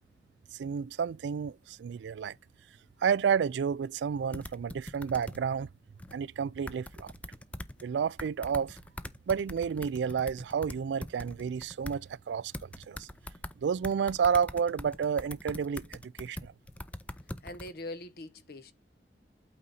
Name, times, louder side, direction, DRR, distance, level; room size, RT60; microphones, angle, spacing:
voice 1, 0.6-2.3 3.0-5.7 6.1-7.1 7.8-8.8 9.3-13.1 13.6-16.5, right 7 dB, 85° right, 0.3 m, -30 dB
sound 1, 4.3-5.4 6.0-6.1 6.7-7.8 8.2-12.0 12.5-13.5 13.8-17.7, left 1 dB, 10° left, 0.4 m, -42 dB
voice 2, 17.4-18.7, left 2 dB, 60° left, 0.9 m, -42 dB
8.6 x 4.0 x 4.0 m
head